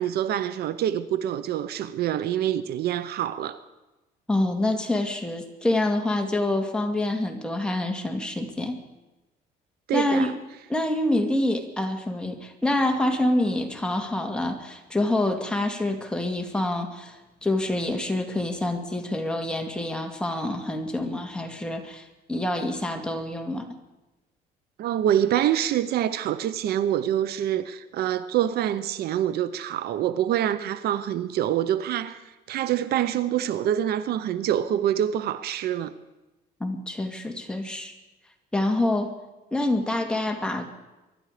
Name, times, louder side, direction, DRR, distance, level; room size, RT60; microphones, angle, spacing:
voice 1, 0.0-3.6 9.9-10.3 24.8-35.9, right 11 dB, 70° right, 0.8 m, -26 dB
voice 2, 4.3-8.8 9.9-10.3 10.7-23.8 36.6-37.9 38.5-39.1 39.5-40.7, left 1 dB, 5° left, 2.2 m, -26 dB
24.0 x 12.0 x 5.0 m
cardioid pair, 110°, 17 cm